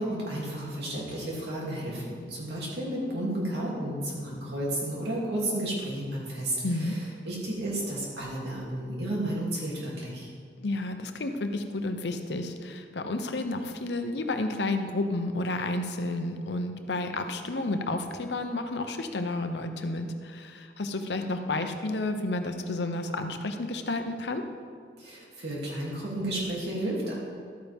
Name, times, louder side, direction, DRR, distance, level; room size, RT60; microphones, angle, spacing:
voice 1, 0.0-10.3 25.0-27.1, right 1 dB, 65° right, -5 dB, 2.9 m, -32 dB
voice 2, 6.6-7.0 10.6-24.4, left 2 dB, 75° left, 7 dB, 0.8 m, -31 dB
12.5 x 9.0 x 3.6 m, 2.1 s
head